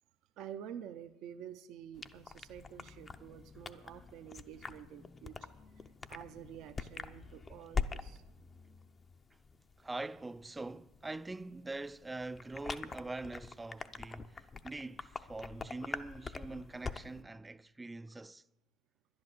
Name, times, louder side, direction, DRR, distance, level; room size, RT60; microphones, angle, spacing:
voice 1, 0.4-5.5 6.1-8.2, right 9 dB, 65° right, 0.6 m, -49 dB
sound 1, 1.9-17.2, left 5 dB, 30° left, 0.6 m, -44 dB
voice 2, 9.8-18.4, right 2 dB, 15° right, 0.4 m, -44 dB
11.0 x 10.5 x 6.6 m
hypercardioid pair, 80°, 0 cm